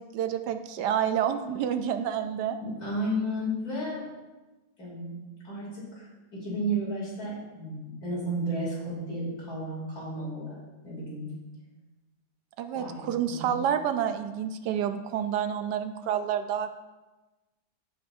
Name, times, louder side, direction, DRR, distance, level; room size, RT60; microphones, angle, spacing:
voice 1, 0.0-2.6 12.6-16.7, right 9 dB, 80° right, 9 dB, 1.2 m, -29 dB
voice 2, 2.6-4.0 4.8-5.1 5.4-10.6 10.8-11.3 12.7-13.6, right 1 dB, 60° left, -6 dB, 3.6 m, -33 dB
14.5 x 5.5 x 2.7 m, 1.1 s
omnidirectional pair, 1.8 m